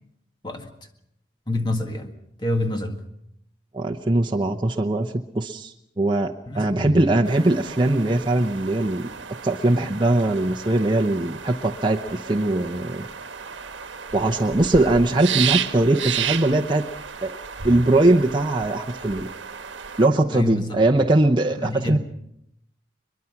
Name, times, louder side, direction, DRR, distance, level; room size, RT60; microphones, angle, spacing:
voice 1, 1.5-2.1 2.4-3.0 6.5-7.1 20.3-20.8 21.5-22.0, left 2 dB, 25° left, 5 dB, 1.8 m, -27 dB
voice 2, 3.7-9.1 9.4-13.0 14.1-16.8 17.2-17.4 17.6-19.3 20.0-22.0, right 2 dB, 25° right, 1 dB, 0.8 m, -21 dB
sound 1, 7.2-20.1, right 8 dB, 75° right, 1.2 m, -33 dB
22.0 x 22.0 x 5.9 m, 0.76 s
head